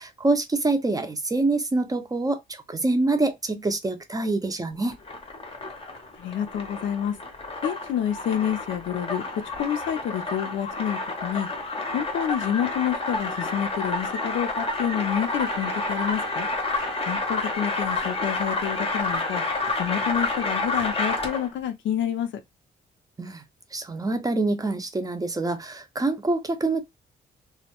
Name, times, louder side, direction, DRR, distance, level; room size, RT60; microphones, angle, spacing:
voice 1, 0.0-5.0 23.2-23.4 23.7-26.8, right 2 dB, 20° right, 0.5 m, -26 dB
sound 1, 4.9-21.5, left 3 dB, 30° left, 0.6 m, -29 dB
voice 2, 6.2-7.2 7.6-9.2 9.6-11.5 11.9-16.5 17.0-19.4 19.8-22.3, left 9 dB, 85° left, 0.5 m, -28 dB
Wind instrument woodwind instrument, 15.1-19.8, right 5 dB, 70° right, 0.6 m, -41 dB
2.2 x 2.0 x 2.9 m
cardioid pair, 105°, 19 cm